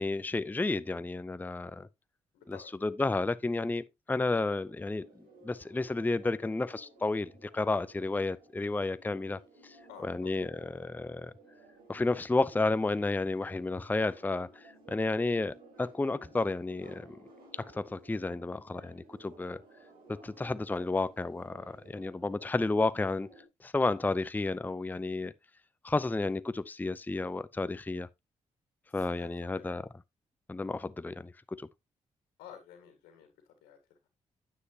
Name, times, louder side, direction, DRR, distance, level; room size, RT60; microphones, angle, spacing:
voice 1, 0.0-1.9 2.5-5.1 5.4-9.8 10.0-11.3 11.9-17.2 17.5-19.6 20.1-23.3 23.6-25.3 25.8-28.1 28.9-29.8 30.5-31.7, left 3 dB, 10° left, 0.5 m, -32 dB
voice 2, 2.3-2.7 9.9-10.4 28.9-29.7 32.4-33.3 33.6-33.8, left 9 dB, 75° left, 1.8 m, -52 dB
sound 1, 4.6-23.4, right 2 dB, 70° right, 5.2 m, -56 dB
9.6 x 7.5 x 2.8 m
hypercardioid pair, 40°, 16 cm